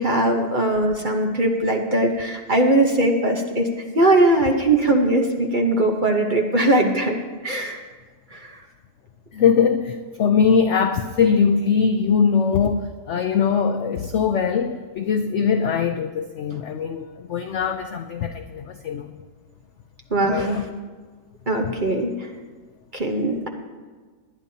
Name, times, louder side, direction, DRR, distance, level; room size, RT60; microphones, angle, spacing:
voice 1, 0.0-3.7 3.9-7.2 7.4-7.8 8.3-8.6 20.1-20.7 21.5-22.3 22.9-23.5, right 1 dB, 35° right, 2 dB, 0.9 m, -20 dB
voice 2, 9.3-19.1 20.3-20.6, left 6 dB, 75° left, 7 dB, 0.6 m, -21 dB
21.0 x 10.5 x 2.8 m, 1.4 s
omnidirectional pair, 1.9 m